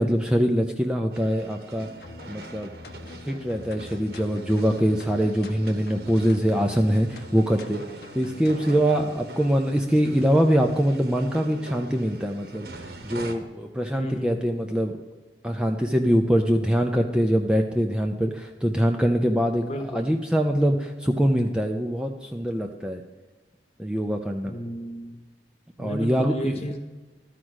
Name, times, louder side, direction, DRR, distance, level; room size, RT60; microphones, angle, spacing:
voice 1, 0.0-1.9 2.3-2.7 3.2-7.8 8.1-12.7 13.0-14.9 15.4-23.0 23.8-24.5 25.8-26.6, equal, 5° right, 3 dB, 0.4 m, -23 dB
sound 1, 1.1-13.4, right 2 dB, 65° right, 1.0 m, -44 dB
sound 2, 2.0-9.1, left 2 dB, 65° left, 0.8 m, -44 dB
voice 2, 13.9-14.4 19.6-20.1 24.4-25.2 25.8-26.8, equal, 35° left, 5 dB, 1.0 m, -33 dB
12.5 x 5.0 x 6.2 m, 1.3 s
head